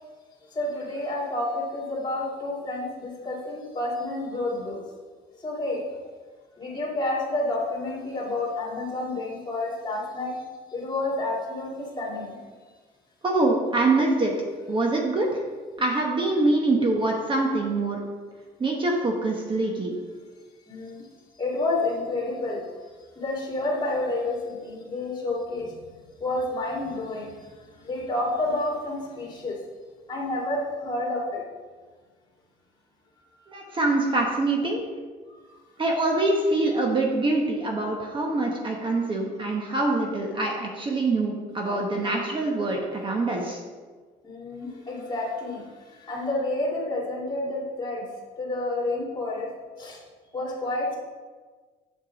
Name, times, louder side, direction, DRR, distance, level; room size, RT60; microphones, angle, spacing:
voice 1, 0.5-4.8 5.4-5.8 6.6-10.4 10.7-12.4 20.7-21.1 21.4-22.6 23.2-29.6 30.1-31.4 44.2-48.1 48.4-49.5 49.8-50.0 50.3-51.0, left 2 dB, 25° left, -3 dB, 2.6 m, -29 dB
voice 2, 13.2-14.3 14.7-15.3 15.8-18.0 18.6-19.9 33.5-34.8 35.8-43.6, right 2 dB, 30° right, 0 dB, 1.1 m, -24 dB
7.5 x 6.8 x 4.0 m, 1.4 s
cardioid pair, 110°, 17 cm